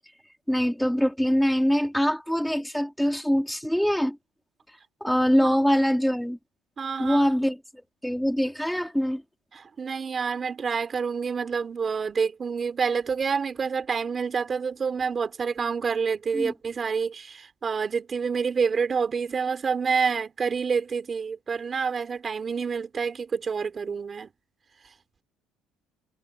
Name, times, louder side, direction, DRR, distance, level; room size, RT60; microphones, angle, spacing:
voice 1, 0.5-4.2 5.0-6.4 7.0-9.2 16.3-16.5, equal, ahead, 3.6 m, -24 dB
voice 2, 6.8-7.2 9.5-24.3, right 5 dB, 30° right, 3.8 m, -28 dB
cardioid pair, 130°, 0 cm